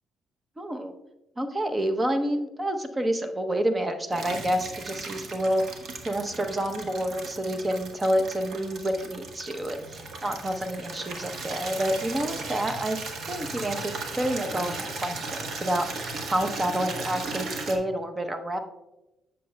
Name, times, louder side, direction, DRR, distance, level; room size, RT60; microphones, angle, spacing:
voice 1, 0.6-0.9 1.4-5.8 6.0-18.6, right 1 dB, 20° right, 7 dB, 0.8 m, -28 dB
Water tap faucet / Liquid, 4.1-17.8, right 3 dB, 65° right, 1.1 m, -37 dB
9.8 x 6.5 x 2.2 m, 0.98 s
cardioid pair, 90°, 0 cm